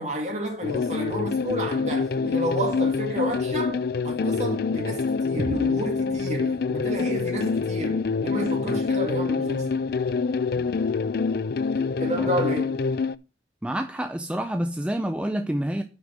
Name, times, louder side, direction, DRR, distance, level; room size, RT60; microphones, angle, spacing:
voice 1, 0.0-9.7 12.0-12.8, equal, 40° right, 2.4 m, -30 dB
sound 1, 0.6-13.1, left 4 dB, 55° left, 0.4 m, -26 dB
sound 2, 5.4-9.3, equal, 25° right, 3.0 m, -40 dB
voice 2, 13.6-15.8, right 1 dB, 5° right, 0.4 m, -28 dB
6.2 x 5.6 x 7.1 m
head